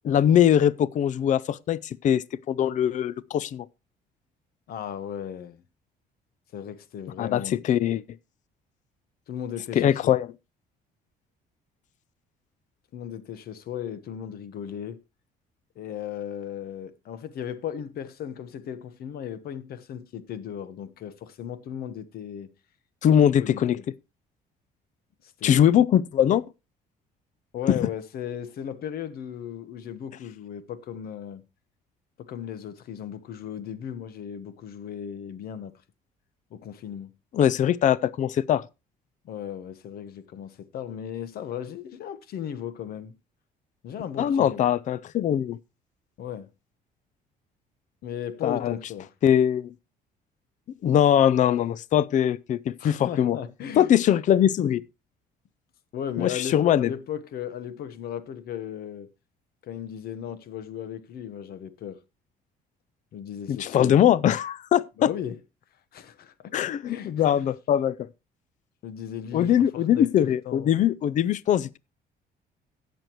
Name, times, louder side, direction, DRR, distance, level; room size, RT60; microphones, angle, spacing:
voice 1, 0.0-3.7 7.2-8.0 9.7-10.3 23.0-23.8 25.4-26.4 27.7-27.8 37.3-38.6 44.2-45.6 48.4-48.7 49.2-49.7 50.8-53.4 53.8-54.8 56.2-56.9 63.5-65.1 66.5-68.0 69.3-71.8, left 10 dB, 45° left, 0.5 m, -22 dB
voice 2, 4.7-5.6 6.5-7.7 9.3-10.1 12.9-15.0 15.7-22.5 23.4-23.8 25.2-25.7 27.5-31.4 32.2-35.7 36.5-37.1 39.2-43.1 43.8-44.6 46.2-46.5 48.0-49.1 52.8-53.9 55.9-59.1 59.6-62.0 63.1-64.0 65.0-65.4 65.9-67.3 68.8-70.9, left 9 dB, 65° left, 1.2 m, -36 dB
17.0 x 6.7 x 3.0 m
cardioid pair, 110°, 17 cm